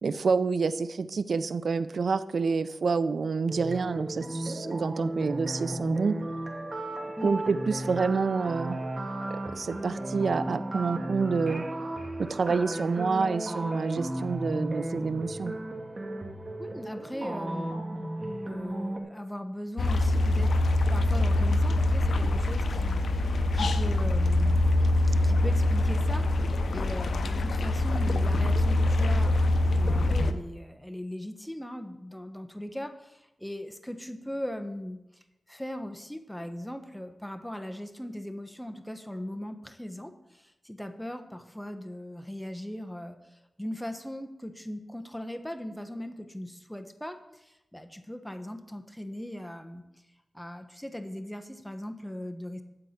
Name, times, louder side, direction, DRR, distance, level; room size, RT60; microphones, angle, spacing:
voice 1, 0.0-6.1 7.2-8.8 9.5-11.6 12.2-15.5, right 4 dB, 75° right, 14 dB, 0.5 m, -28 dB
sound 1, 3.5-19.0, right 1 dB, 40° right, 2.1 m, -35 dB
voice 2, 16.6-20.5 20.9-29.4 29.7-35.2 35.5-49.8 50.3-52.6, left 1 dB, 5° left, 6 dB, 1.1 m, -39 dB
sound 2, 19.8-30.3, left 2 dB, 85° left, 0.6 m, -24 dB
12.5 x 4.6 x 8.1 m, 0.94 s
cardioid pair, 50°, 0 cm